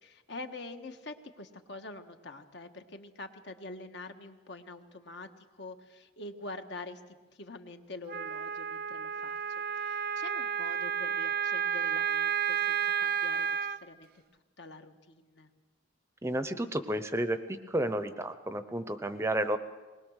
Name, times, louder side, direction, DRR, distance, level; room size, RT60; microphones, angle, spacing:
voice 1, 0.0-15.5, left 2 dB, 60° left, 7 dB, 1.4 m, -46 dB
Wind instrument woodwind instrument, 8.1-13.8, right 7 dB, 50° right, 0.5 m, -31 dB
voice 2, 16.2-19.6, right 1 dB, 15° right, 10 dB, 0.7 m, -31 dB
21.0 x 20.0 x 6.4 m, 1.3 s
head